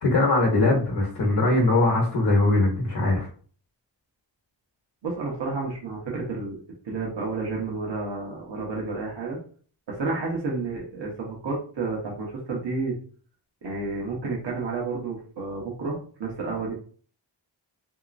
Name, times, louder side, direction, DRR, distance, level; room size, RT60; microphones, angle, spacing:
voice 1, 0.0-3.3, left 2 dB, 60° left, -1 dB, 0.9 m, -21 dB
voice 2, 5.0-6.6 6.8-9.4 9.9-12.9 13.6-16.7, right 3 dB, 65° right, -3 dB, 1.0 m, -30 dB
3.0 x 2.9 x 2.5 m, 0.43 s
wide cardioid pair, 135°, 46 cm